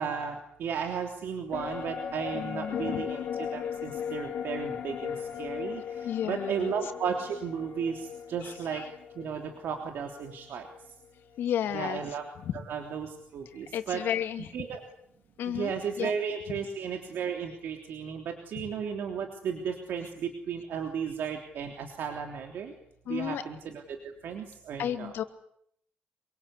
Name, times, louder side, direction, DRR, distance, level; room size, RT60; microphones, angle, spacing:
voice 1, 0.0-8.8 9.2-10.7 11.7-12.2 12.5-14.0 14.5-14.8 15.5-22.7 23.1-25.1, right 7 dB, 70° right, 4 dB, 3.3 m, -34 dB
sound 1, 1.5-11.0 11.3-11.4, left 8 dB, 65° left, 3.8 m, -38 dB
voice 2, 2.3-3.0 6.0-6.7 8.4-8.9 11.4-12.0 12.4-12.5 13.7-14.5 15.4-15.7 16.0-16.1 23.1-23.4 24.8-25.2, left 10 dB, 85° left, 8 dB, 2.6 m, -32 dB
26.5 x 24.0 x 8.4 m, 0.70 s
wide cardioid pair, 165°, 4 cm